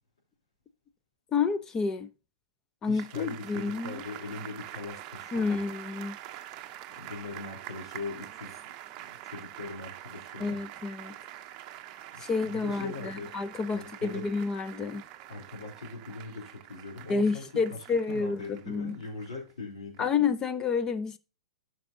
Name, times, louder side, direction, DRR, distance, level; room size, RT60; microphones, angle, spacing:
voice 1, 1.3-2.1 2.8-4.0 5.3-6.2 10.4-11.2 12.2-15.0 17.1-19.0 20.0-21.2, left 5 dB, 20° left, 0.7 m, -29 dB
voice 2, 2.8-5.6 6.9-8.7 9.0-10.6 12.1-13.4 13.7-14.3 15.3-20.1, left 3 dB, 80° left, 3.2 m, -41 dB
sound 1, 3.0-19.5 19.9-20.0, right 13 dB, 35° right, 0.7 m, -45 dB
13.0 x 5.5 x 2.7 m
hypercardioid pair, 120°, 3 cm